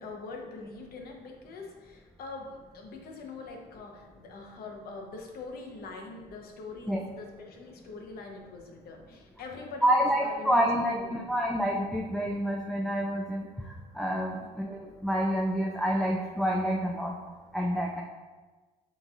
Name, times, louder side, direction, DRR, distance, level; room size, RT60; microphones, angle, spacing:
voice 1, 0.0-11.6 14.3-14.5, left 3 dB, 65° left, 1 dB, 0.8 m, -43 dB
voice 2, 9.8-17.1 17.5-18.0, equal, ahead, -1 dB, 0.3 m, -28 dB
6.2 x 3.1 x 2.4 m, 1.3 s
cardioid pair, 110°, 17 cm